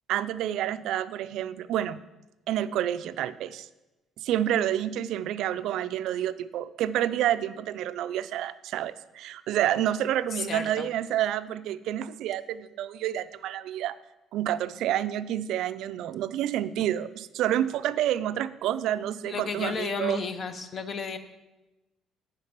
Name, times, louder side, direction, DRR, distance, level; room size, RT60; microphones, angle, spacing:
voice 1, 0.1-2.0 2.5-3.7 4.2-14.0 14.3-20.2, right 11 dB, 65° right, 14 dB, 0.4 m, -29 dB
voice 2, 10.3-10.9 19.3-21.2, left 5 dB, 30° left, 10 dB, 0.6 m, -33 dB
10.5 x 5.2 x 5.8 m, 1.0 s
cardioid pair, 175°, 0 cm